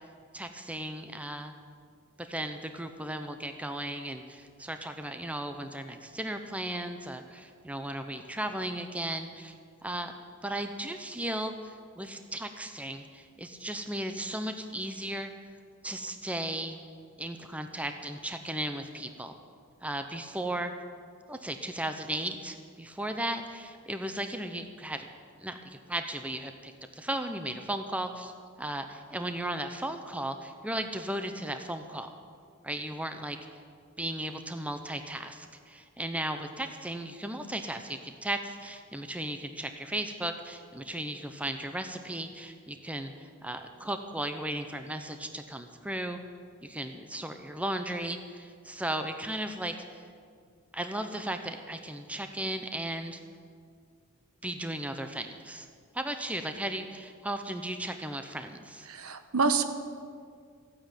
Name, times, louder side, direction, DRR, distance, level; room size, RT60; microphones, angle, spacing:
voice 1, 0.3-1.5 2.2-9.5 9.8-10.1 10.4-15.3 15.8-16.8 17.2-19.4 19.8-20.7 21.3-25.1 25.4-28.3 28.6-32.1 32.6-33.4 34.0-46.2 46.6-50.0 50.7-53.2 54.4-55.7 55.9-58.9, right 1 dB, 5° right, 7 dB, 0.7 m, -36 dB
voice 2, 58.9-59.6, right 4 dB, 70° right, 9 dB, 1.1 m, -27 dB
15.0 x 9.0 x 9.0 m, 2.1 s
head